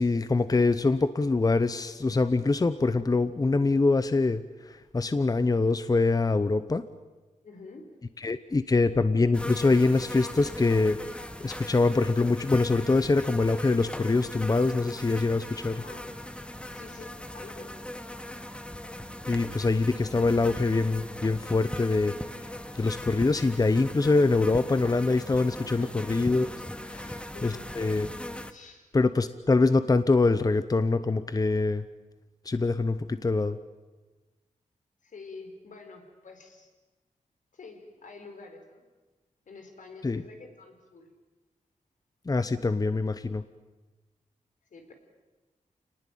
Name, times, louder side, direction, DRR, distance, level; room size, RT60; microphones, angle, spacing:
voice 1, 0.0-6.8 8.2-11.0 11.4-15.8 19.3-22.5 22.7-26.5 26.8-27.0 27.4-28.1 28.9-31.8 32.4-33.6 40.0-40.2 42.3-43.4, left 3 dB, 30° left, 12 dB, 0.9 m, -24 dB
voice 2, 7.4-8.0 15.5-16.1 16.7-17.7 25.6-26.2 26.9-27.9 28.5-28.9 35.0-36.7 37.5-38.8 39.5-41.1 44.7-44.9, left 3 dB, 80° left, 4 dB, 4.6 m, -48 dB
sound 1, 9.3-28.5, left 1 dB, 10° left, 1.4 m, -39 dB
28.5 x 19.5 x 9.2 m, 1.2 s
wide cardioid pair, 100°, 13 cm